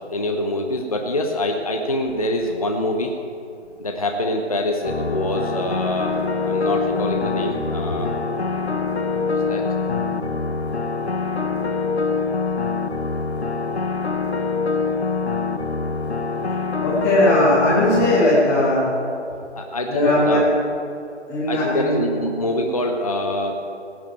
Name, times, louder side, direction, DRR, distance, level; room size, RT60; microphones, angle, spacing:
voice 1, 0.1-3.1 3.8-8.1 9.1-9.6 19.5-20.4 21.5-23.6, left 1 dB, 30° left, 3 dB, 0.9 m, -25 dB
sound 1, 4.8-18.3, left 4 dB, 65° left, 1.0 m, -24 dB
voice 2, 16.8-18.9 19.8-20.4 21.3-21.9, left 1 dB, 5° left, -9 dB, 2.1 m, -18 dB
17.5 x 6.2 x 9.0 m, 2.6 s
figure-of-eight pair, 160°, 35 cm